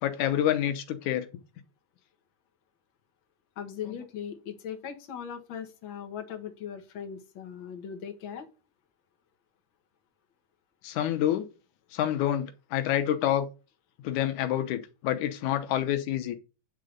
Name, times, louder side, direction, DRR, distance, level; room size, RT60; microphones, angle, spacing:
voice 1, 0.0-1.3 10.8-11.5 11.9-13.5 14.0-16.4, left 11 dB, 90° left, 2.4 m, -27 dB
voice 2, 3.6-8.5, left 8 dB, 50° left, 2.0 m, -39 dB
9.6 x 3.8 x 6.6 m
omnidirectional pair, 3.3 m